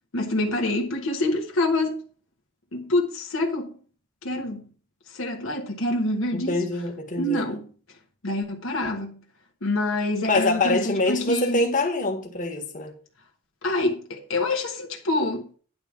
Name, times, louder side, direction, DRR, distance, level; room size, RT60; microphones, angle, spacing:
voice 1, 0.1-2.0 2.7-3.8 4.2-4.7 5.1-6.6 7.2-7.7 8.2-9.2 9.6-11.6 13.6-15.5, left 2 dB, 75° left, 1.3 m, -26 dB
voice 2, 6.3-7.4 10.2-12.9, left 2 dB, 40° left, 1.7 m, -25 dB
10.5 x 3.6 x 7.2 m
head